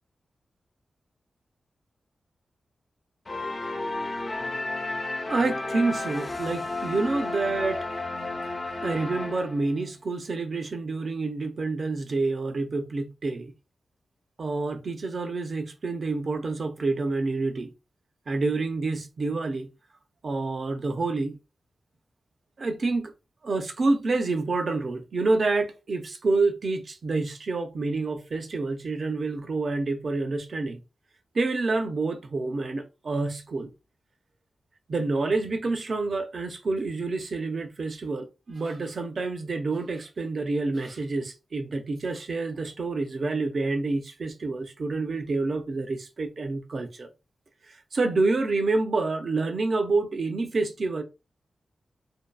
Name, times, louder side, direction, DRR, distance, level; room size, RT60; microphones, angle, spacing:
sound 1, 3.3-9.8, left 2 dB, 40° left, 0.5 m, -32 dB
voice 1, 5.3-7.9 8.8-13.5 14.4-17.7 18.3-19.7 20.2-21.4 22.6-23.1 23.4-30.8 31.3-33.7 34.9-47.1 47.7-51.0, right 3 dB, 60° right, 0.5 m, -28 dB
2.6 x 2.2 x 2.2 m
cardioid pair, 65°, 0 cm